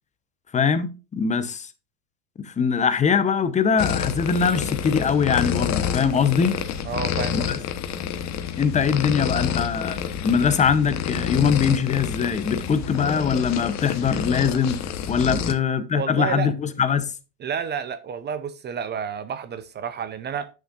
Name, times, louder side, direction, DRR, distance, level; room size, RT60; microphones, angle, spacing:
voice 1, 0.5-1.7 2.4-6.6 7.3-7.6 8.6-14.8 15.1-17.1, left 6 dB, 15° left, 0.7 m, -22 dB
sound 1, 3.8-15.5, left 8 dB, 35° left, 1.0 m, -28 dB
voice 2, 6.8-7.5 15.3-15.6 15.9-16.5 17.4-20.5, right 7 dB, 25° right, 0.5 m, -30 dB
10.0 x 6.4 x 2.4 m
supercardioid pair, 120°, 46 cm